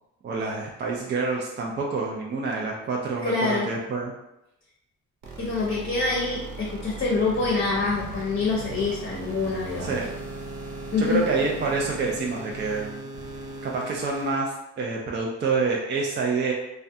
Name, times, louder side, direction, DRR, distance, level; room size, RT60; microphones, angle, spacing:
voice 1, 0.2-4.1 9.8-10.0 11.0-13.1 13.6-16.5, right 4 dB, 35° right, -1 dB, 0.4 m, -27 dB
voice 2, 3.2-3.7 5.4-9.9 10.9-11.2, left 3 dB, 45° left, -3 dB, 0.6 m, -26 dB
sound 1, 5.2-14.3, right 3 dB, 80° right, 0.6 m, -38 dB
2.3 x 2.2 x 2.6 m, 0.88 s
cardioid pair, 90°, 30 cm